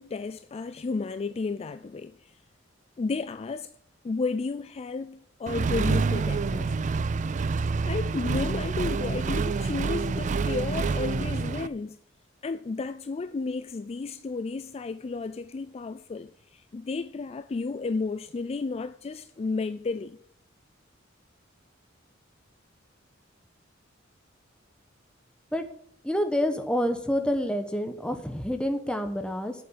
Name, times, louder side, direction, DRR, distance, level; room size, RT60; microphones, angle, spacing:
voice 1, 0.0-2.4 3.0-3.7 4.0-6.9 7.9-12.0 12.4-20.2, left 4 dB, 30° left, 0.3 m, -32 dB
Accelerating revving vroom, 5.5-11.7, right 4 dB, 40° right, 0.4 m, -27 dB
voice 2, 26.0-29.5, equal, 5° left, 1.1 m, -28 dB
8.5 x 7.1 x 6.9 m
head